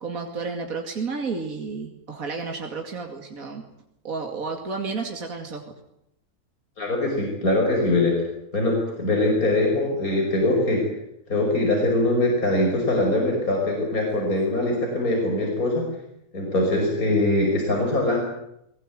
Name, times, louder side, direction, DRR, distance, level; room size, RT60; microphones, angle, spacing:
voice 1, 0.0-3.6 4.0-5.6, right 4 dB, 65° right, 3 dB, 2.9 m, -31 dB
voice 2, 6.8-8.2 8.5-10.8 11.3-15.8 16.3-18.2, left 2 dB, 70° left, 0 dB, 6.0 m, -22 dB
22.5 x 20.0 x 9.3 m, 0.80 s
omnidirectional pair, 1.5 m